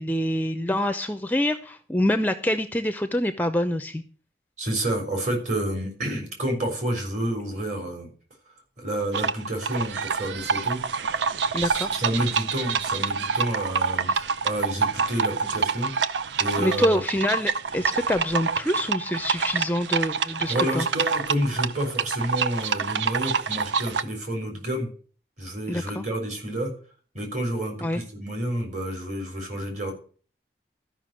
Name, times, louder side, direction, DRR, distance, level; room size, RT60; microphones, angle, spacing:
voice 1, 0.0-4.0 11.5-11.9 16.6-20.9 25.7-26.0 27.8-28.0, left 1 dB, 10° left, 9 dB, 0.5 m, -26 dB
voice 2, 4.6-8.1 8.8-10.8 11.5-15.9 16.4-17.0 20.5-24.9 25.4-26.7 27.1-29.9, right 1 dB, 40° right, 3 dB, 3.9 m, -29 dB
sound 1, 9.1-24.0, right 5 dB, 85° right, 0.6 m, -27 dB
13.0 x 5.8 x 7.5 m, 0.42 s
head